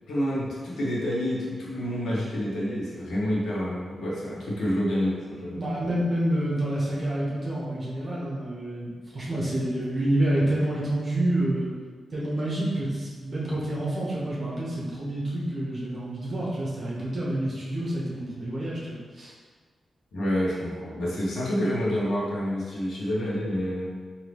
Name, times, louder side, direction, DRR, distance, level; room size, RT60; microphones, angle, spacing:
voice 1, 0.1-5.6 20.1-23.9, equal, 80° left, -6 dB, 1.1 m, -28 dB
voice 2, 5.5-11.7 12.1-19.3, right 1 dB, 30° right, -6 dB, 1.0 m, -28 dB
3.9 x 2.8 x 3.4 m, 1.5 s
wide cardioid pair, 175°, 0 cm